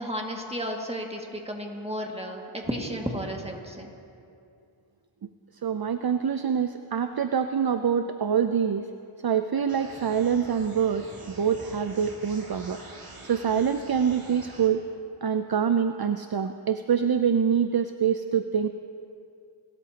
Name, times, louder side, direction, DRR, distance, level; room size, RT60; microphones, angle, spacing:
voice 1, 0.0-3.9, equal, 10° right, 1 dB, 2.0 m, -33 dB
voice 2, 5.6-8.9 9.2-12.8 13.2-14.8 15.2-18.7, right 7 dB, 50° right, 9 dB, 0.6 m, -25 dB
sound 1, 9.7-14.7, right 2 dB, 85° right, 2.3 m, -46 dB
27.0 x 13.5 x 2.9 m, 2.5 s
wide cardioid pair, 40°, 50 cm